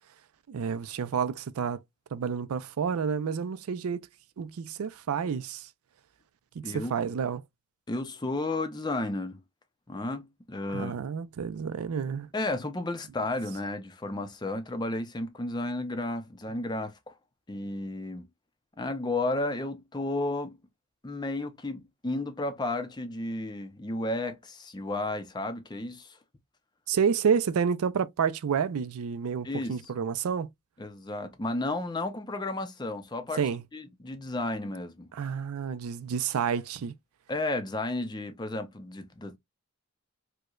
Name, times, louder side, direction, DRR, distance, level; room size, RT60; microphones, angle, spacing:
voice 1, 0.5-1.8 2.1-4.0 4.4-5.7 6.6-7.4 10.7-12.3 26.9-30.5 33.4-33.6 35.2-36.9, right 6 dB, 80° right, 0.4 m, -29 dB
voice 2, 7.9-9.4 9.9-11.1 12.3-17.1 17.5-18.3 18.8-20.6 21.0-26.2 29.4-29.9 30.8-33.4 33.7-35.1 37.3-39.4, left 2 dB, 20° left, 0.5 m, -33 dB
4.6 x 2.1 x 2.3 m
head